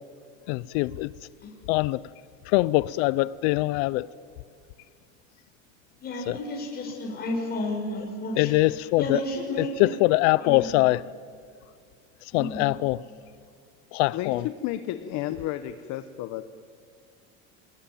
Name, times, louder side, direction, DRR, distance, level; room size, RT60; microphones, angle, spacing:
voice 1, 0.5-1.1 1.7-2.0 2.5-4.1 6.3-6.4 8.4-9.2 9.8-11.0 12.3-13.0 13.9-14.4, left 20 dB, 75° left, 0.6 m, -23 dB
voice 2, 6.0-8.5 9.0-9.9 10.4-10.9 12.3-12.7, left 1 dB, 25° left, 5.6 m, -32 dB
voice 3, 14.1-16.6, left 13 dB, 55° left, 1.0 m, -32 dB
26.5 x 20.0 x 9.2 m
cardioid pair, 150°, 35 cm